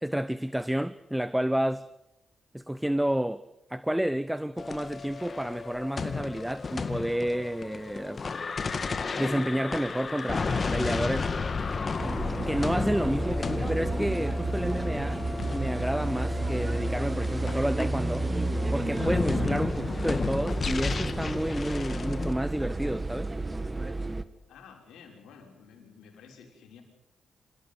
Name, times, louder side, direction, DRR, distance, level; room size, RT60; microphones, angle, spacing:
voice 1, 0.0-1.9 2.5-3.4 3.7-8.2 9.2-11.3 12.5-15.2 15.5-18.3 18.7-23.3, right 1 dB, 5° right, 0.9 m, -30 dB
sound 1, 4.6-22.3, left 4 dB, 40° left, 2.0 m, -33 dB
sound 2, 12.0-24.2, right 2 dB, 20° right, 1.8 m, -31 dB
voice 2, 24.5-26.8, left 6 dB, 85° left, 6.2 m, -51 dB
27.0 x 16.0 x 9.6 m
cardioid pair, 70°, 0 cm